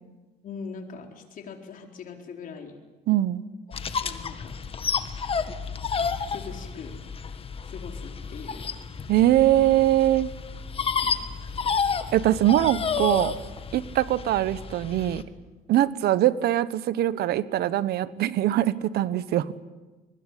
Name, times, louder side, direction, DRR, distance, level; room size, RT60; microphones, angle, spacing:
voice 1, 0.4-2.7 3.7-4.6 6.3-6.9 7.6-8.7 11.0-11.2, left 5 dB, 55° left, 3 dB, 4.3 m, -41 dB
voice 2, 3.1-3.4 9.1-10.3 12.1-13.3 13.7-15.2 15.7-19.5, right 13 dB, 70° right, 16 dB, 1.2 m, -22 dB
sound 1, 3.7-15.2, left 5 dB, 35° left, 1.7 m, -31 dB
23.5 x 20.5 x 10.0 m, 1.2 s
cardioid pair, 110°, 17 cm